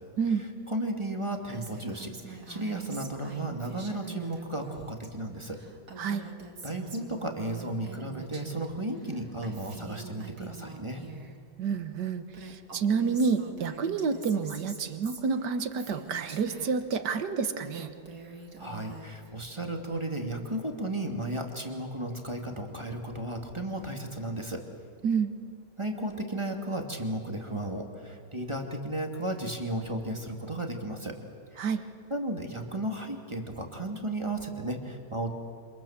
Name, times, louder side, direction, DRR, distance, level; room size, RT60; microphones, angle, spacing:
voice 1, 0.7-5.6 6.2-6.3 6.6-11.0 18.6-24.6 25.8-31.2 31.5-31.6 32.1-35.3, right 1 dB, 15° right, 3 dB, 2.5 m, -34 dB
Female speech woman speaking, 1.5-5.1 5.4-8.7 8.9-11.3 12.0-12.1 12.3-17.0 17.4-19.3, right 4 dB, 65° right, 3.1 m, -45 dB
voice 2, 11.6-17.9 25.0-25.3 31.6-31.8, right 5 dB, 85° right, 9 dB, 1.9 m, -29 dB
28.5 x 26.5 x 7.4 m, 2.2 s
omnidirectional pair, 1.8 m